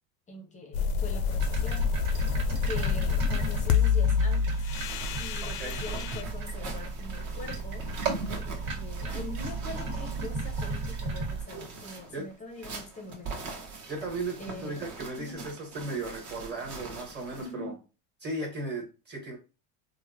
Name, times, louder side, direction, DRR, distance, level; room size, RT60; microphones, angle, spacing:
voice 1, 0.3-1.9 2.6-4.7 5.2-7.9 8.4-13.5 14.4-15.4 17.4-17.8, left 2 dB, 15° left, 0.6 m, -43 dB
sound 1, 0.7-6.2, left 6 dB, 85° left, 0.5 m, -27 dB
sound 2, 1.3-11.4, right 3 dB, 70° right, 1.4 m, -35 dB
sound 3, 4.8-17.5, right 3 dB, 45° right, 1.0 m, -42 dB
voice 2, 5.4-5.8 12.1-12.3 13.9-17.7 18.2-19.4, right 2 dB, 25° right, 1.2 m, -36 dB
3.5 x 2.1 x 2.7 m
supercardioid pair, 125°, 44 cm